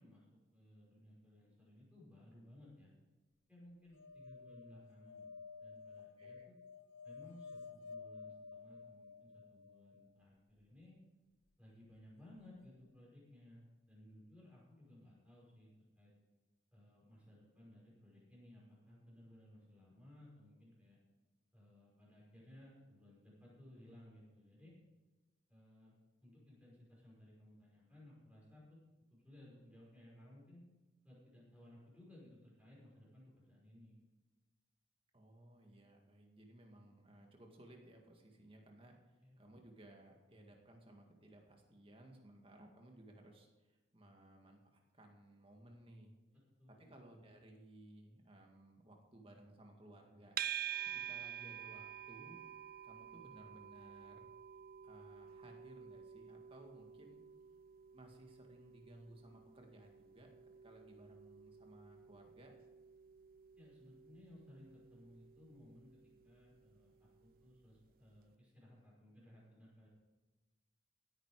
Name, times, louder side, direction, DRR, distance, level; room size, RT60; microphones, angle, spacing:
voice 1, 0.0-2.9 3.5-5.3 5.6-6.5 7.0-11.0 11.6-16.1 16.7-21.0 21.5-24.8 25.5-28.8 29.1-30.6 31.0-34.0 39.2-39.4 46.3-46.9 63.6-69.9, left 1 dB, 5° right, -6 dB, 5.6 m, -60 dB
sound 1, 3.9-10.1 12.4-12.5 12.7-12.8, left 5 dB, 75° left, 0.6 m, -53 dB
voice 2, 35.1-39.0 39.4-46.1 46.7-50.4 51.0-52.4 52.8-54.3 54.8-57.2 57.9-60.3 60.6-62.5, right 1 dB, 30° right, 2 dB, 2.0 m, -59 dB
sound 2, 50.4-67.6, right 10 dB, 45° right, 0.4 m, -49 dB
16.0 x 9.5 x 4.9 m, 1.2 s
head